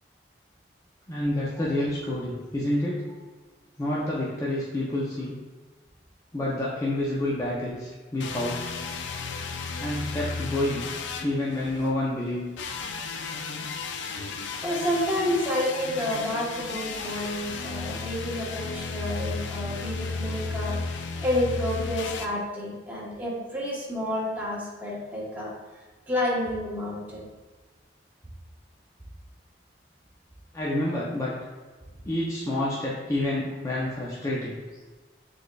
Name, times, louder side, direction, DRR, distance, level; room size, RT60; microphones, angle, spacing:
voice 1, 1.1-3.0 3.8-5.4 6.3-8.7 9.8-10.9 11.2-12.5 30.5-31.3 32.1-34.6, left 1 dB, 20° left, -6 dB, 0.5 m, -28 dB
sound 1, 8.2-11.9 12.6-22.3, left 4 dB, 85° left, 0.4 m, -34 dB
voice 2, 14.6-20.7 21.2-25.5 26.1-27.2, left 1 dB, 10° right, -6 dB, 1.0 m, -29 dB
6.3 x 3.2 x 2.2 m, 1.3 s
head